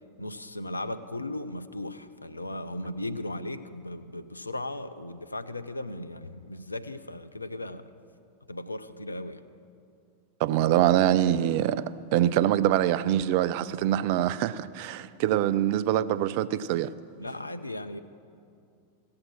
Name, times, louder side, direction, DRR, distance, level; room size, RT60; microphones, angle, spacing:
voice 1, 0.2-7.9 8.5-9.4 16.8-16.9 17.2-18.0, left 1 dB, 80° left, 11 dB, 0.5 m, -37 dB
voice 2, 10.4-11.8 12.1-16.9, right 12 dB, 45° right, 16 dB, 0.4 m, -24 dB
16.0 x 7.6 x 6.0 m, 2.5 s
figure-of-eight pair, 90°, 0 cm